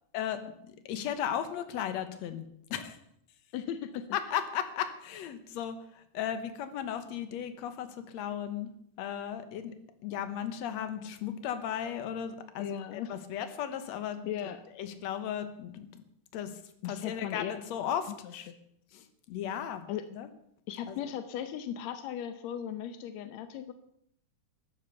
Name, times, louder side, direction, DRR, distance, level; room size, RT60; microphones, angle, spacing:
voice 1, 0.1-3.0 4.1-8.7 9.0-9.7 10.0-14.2 14.8-16.0 16.3-16.5 16.8-18.5 18.9-20.3 20.9-21.0, left 9 dB, 65° left, 10 dB, 1.9 m, -36 dB
voice 2, 3.5-4.1 12.6-13.2 14.3-14.6 16.8-17.5 18.2-18.5 19.9-20.1 20.7-23.7, left 10 dB, 80° left, 10 dB, 1.6 m, -37 dB
14.0 x 10.5 x 6.7 m, 0.71 s
omnidirectional pair, 4.2 m